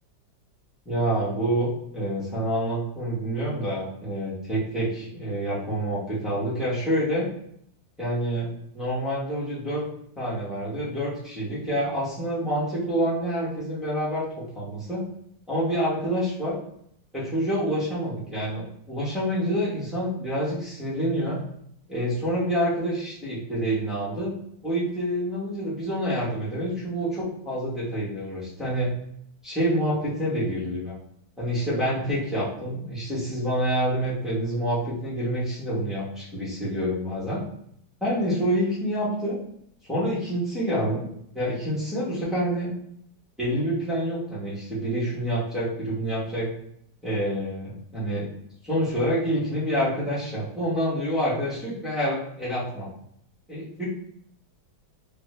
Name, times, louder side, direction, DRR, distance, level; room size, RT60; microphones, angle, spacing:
voice 1, 0.8-7.3 8.0-8.5 8.7-9.8 10.2-15.1 15.5-16.6 17.1-21.4 21.9-24.4 24.6-28.9 29.4-30.9 31.4-37.4 38.0-39.4 39.9-41.1 41.3-42.7 43.4-46.5 47.0-48.3 48.6-52.9 53.5-53.8, equal, ahead, -10 dB, 0.4 m, -27 dB
3.4 x 2.2 x 3.1 m, 0.70 s
omnidirectional pair, 2.0 m